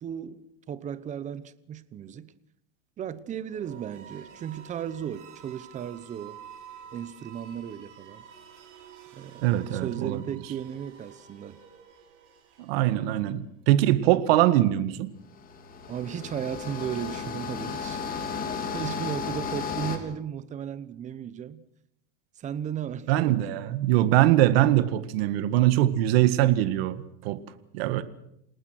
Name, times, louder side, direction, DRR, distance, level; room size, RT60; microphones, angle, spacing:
voice 1, 0.0-2.3 3.0-6.4 6.9-8.2 9.1-9.4 9.8-11.6 15.9-18.3 18.6-21.6 22.4-23.5, right 9 dB, 20° right, 1.0 m, -35 dB
sound 1, 3.4-13.4, right 8 dB, 90° right, 7.7 m, -49 dB
voice 2, 9.4-10.4 12.6-15.1 23.1-27.4 27.7-28.0, right 14 dB, 55° right, 1.9 m, -22 dB
sound 2, 15.3-20.0, left 5 dB, 25° left, 3.3 m, -34 dB
29.0 x 19.0 x 6.2 m
supercardioid pair, 150°, 35 cm